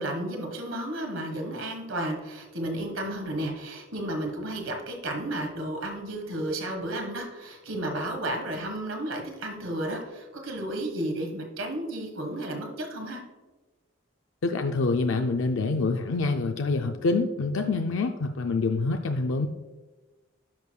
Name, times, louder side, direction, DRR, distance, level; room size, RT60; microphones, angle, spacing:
voice 1, 0.0-13.2, right 1 dB, 85° right, 3 dB, 1.5 m, -32 dB
voice 2, 14.4-19.5, left 3 dB, 70° left, 5 dB, 0.4 m, -26 dB
10.5 x 6.4 x 2.3 m, 1.2 s
head